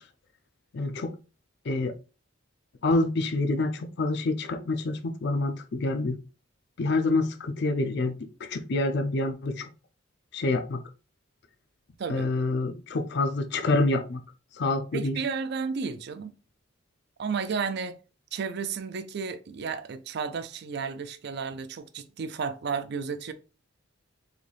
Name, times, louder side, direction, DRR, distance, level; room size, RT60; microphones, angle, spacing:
voice 1, 0.7-1.1 1.7-1.9 2.8-6.2 6.8-8.1 8.4-9.7 10.3-10.8 12.1-14.2 14.6-15.2, left 2 dB, 55° left, 0.4 m, -27 dB
voice 2, 12.0-12.3 14.9-16.3 17.2-18.0 18.3-23.3, right 5 dB, 55° right, 0.4 m, -32 dB
3.8 x 2.6 x 3.3 m
head